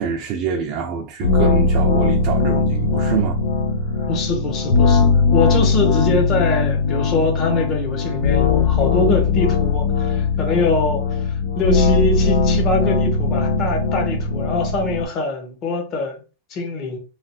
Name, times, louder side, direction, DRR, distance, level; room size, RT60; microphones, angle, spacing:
voice 1, 0.0-3.4 4.0-4.1, right 6 dB, 40° right, 0.5 m, -25 dB
sound 1, 1.2-15.0, left 4 dB, 80° left, 0.7 m, -19 dB
voice 2, 4.1-11.0 11.5-16.2 16.5-17.0, left 3 dB, 30° left, 0.8 m, -23 dB
3.2 x 2.4 x 2.8 m
supercardioid pair, 155°, 0 cm